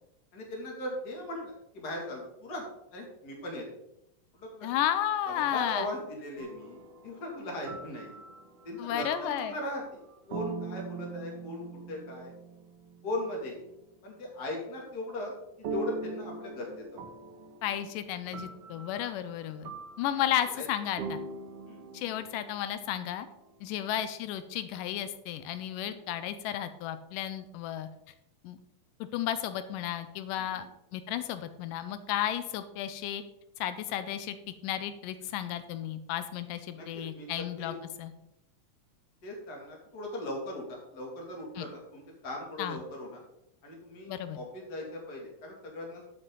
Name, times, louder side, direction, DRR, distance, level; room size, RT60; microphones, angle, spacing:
voice 1, 0.3-3.7 4.3-4.7 5.3-8.2 8.6-10.0 10.3-12.3 13.0-13.7 14.0-15.3 15.6-17.1 20.1-20.7 21.7-21.8 25.9-26.0 30.4-30.7 36.7-37.8 39.2-43.2 43.6-46.2, left 1 dB, 30° left, -1 dB, 2.7 m, -39 dB
voice 2, 4.6-5.9 8.8-9.5 17.6-19.7 20.0-21.2 21.9-23.3 23.6-27.9 28.4-28.6 29.1-30.7 30.9-33.2 33.6-34.4 34.6-37.7 38.0-38.1 41.6-41.7 42.6-42.8 44.1-44.4, left 11 dB, 90° left, 11 dB, 2.3 m, -33 dB
sound 1, 6.4-13.5 15.6-23.3, right 4 dB, 65° right, 1.6 m, -43 dB
12.0 x 7.8 x 3.9 m, 0.83 s
omnidirectional pair, 3.8 m